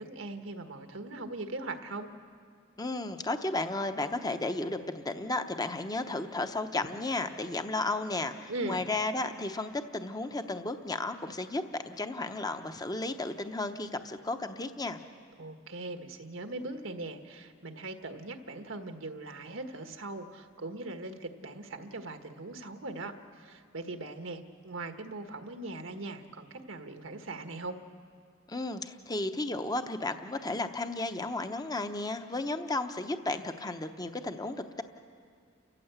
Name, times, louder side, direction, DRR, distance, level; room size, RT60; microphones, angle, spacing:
voice 1, 0.0-2.1 8.5-8.8 15.4-27.8, right 2 dB, 85° right, 6 dB, 1.5 m, -40 dB
voice 2, 2.8-15.0 28.5-34.8, left 2 dB, 20° left, 8 dB, 0.8 m, -33 dB
29.5 x 14.5 x 8.1 m, 2.1 s
head